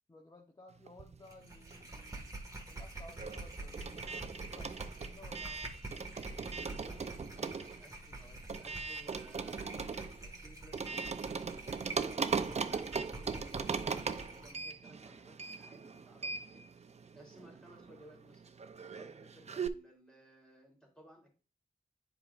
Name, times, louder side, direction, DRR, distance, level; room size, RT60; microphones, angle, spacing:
voice 1, 0.1-2.3 2.7-6.2, left 1 dB, 25° left, 3 dB, 0.9 m, -57 dB
sound 1, 0.9-2.1 2.4-19.7, right 5 dB, 45° right, 0.5 m, -40 dB
sound 2, 1.3-14.6, right 2 dB, 20° right, 1.7 m, -47 dB
voice 2, 6.5-16.8 17.1-18.4 19.0-21.3, equal, 5° left, -1 dB, 3.4 m, -59 dB
10.0 x 5.0 x 2.5 m, 0.34 s
wide cardioid pair, 110°, 15 cm